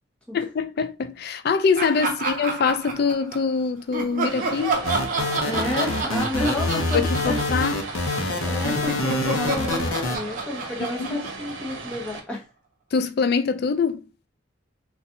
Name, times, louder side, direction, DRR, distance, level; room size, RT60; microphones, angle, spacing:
voice 1, 0.3-4.8 6.9-7.8 11.1-11.2 12.9-14.0, left 5 dB, 50° left, 0.3 m, -24 dB
Laughter, 1.8-3.5 3.9-8.3 8.6-12.2, right 3 dB, 40° right, 0.6 m, -30 dB
Vehicle, 4.3-12.2, right 3 dB, 75° right, 0.7 m, -37 dB
sound 1, 4.8-10.2, left 2 dB, 85° left, 0.7 m, -26 dB
voice 2, 5.4-7.4 8.4-12.5, left 1 dB, 5° left, 0.9 m, -30 dB
4.1 x 2.3 x 2.6 m
head